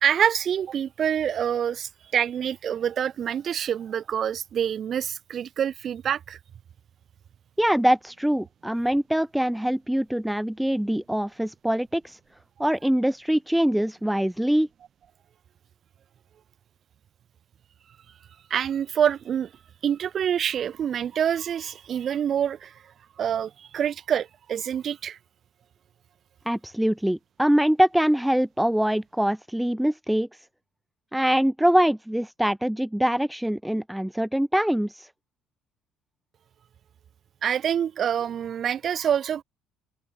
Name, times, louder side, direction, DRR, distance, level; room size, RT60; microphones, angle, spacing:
voice 1, 0.0-6.4 18.5-19.5 19.8-22.7 23.2-25.2 37.4-39.4, right 9 dB, 35° right, 1.7 m, -26 dB
voice 2, 7.6-12.2 12.6-14.7 26.5-30.3 31.1-35.1, equal, ahead, 0.3 m, -23 dB
cardioid pair, 175°, 0 cm